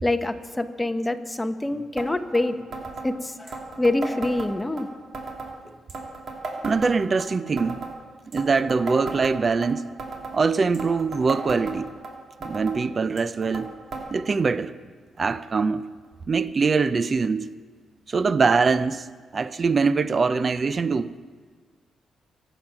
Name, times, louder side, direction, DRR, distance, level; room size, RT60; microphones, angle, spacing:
voice 1, 0.0-2.6 3.0-4.9, left 2 dB, 10° left, 0.9 m, -26 dB
sound 1, 2.0-2.1 2.3-2.4 2.7-3.1 3.5-4.8 5.1-5.5 5.9-7.3 7.6-7.9 8.3-9.7 10.0-10.4 10.7-12.1 12.4-12.8 13.2-13.7 13.9-14.0 14.3-14.4 15.2-15.3 16.0-16.1, right 3 dB, 55° right, 3.1 m, -35 dB
voice 2, 6.6-7.8 8.3-9.9 10.3-11.9 12.4-13.8 14.1-14.7 15.2-15.9 16.3-17.5 18.1-21.2, right 4 dB, 35° right, 0.5 m, -23 dB
25.0 x 8.9 x 6.0 m
cardioid pair, 125°, 0 cm